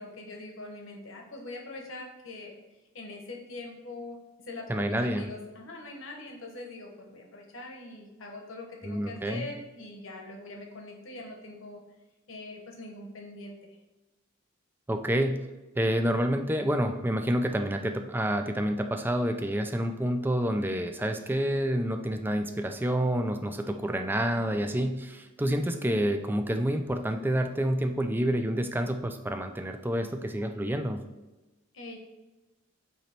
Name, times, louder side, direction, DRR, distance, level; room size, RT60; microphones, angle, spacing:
voice 1, 0.0-2.5 2.9-4.2 4.5-11.8 12.3-13.6 31.7-32.0, left 2 dB, 65° left, 2 dB, 1.2 m, -43 dB
voice 2, 4.7-5.3 8.8-9.5 14.9-15.4 15.8-31.0, equal, 10° right, 6 dB, 0.4 m, -28 dB
8.1 x 3.1 x 4.4 m, 1.1 s
head